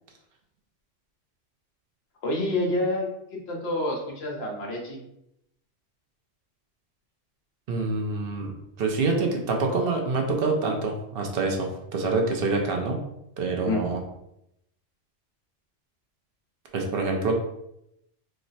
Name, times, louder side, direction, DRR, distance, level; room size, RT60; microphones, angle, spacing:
voice 1, 2.2-5.0 13.6-13.8, left 2 dB, 60° left, -1 dB, 1.0 m, -28 dB
voice 2, 7.7-13.0 13.4-14.0 16.7-17.3, right 3 dB, 60° right, 2 dB, 0.7 m, -26 dB
3.1 x 2.0 x 3.9 m, 0.80 s
omnidirectional pair, 1.3 m